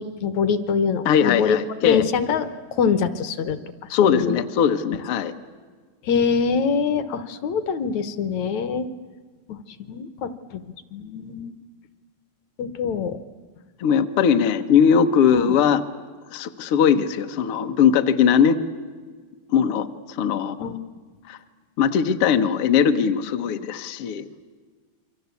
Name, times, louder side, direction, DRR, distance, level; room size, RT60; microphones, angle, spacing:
voice 1, 0.0-1.6 1.9-3.6 3.9-4.4 6.0-8.9 9.5-9.6 9.9-10.6 10.9-11.5 12.6-13.2 15.4-15.5 20.6-20.8, left 6 dB, 65° left, 12 dB, 1.9 m, -24 dB
voice 2, 1.0-2.0 3.9-5.3 13.8-15.8 16.3-18.6 19.5-20.7 21.3-21.4 21.8-24.3, left 7 dB, 85° left, 6 dB, 1.2 m, -20 dB
29.0 x 24.0 x 8.3 m, 1.5 s
omnidirectional pair, 4.2 m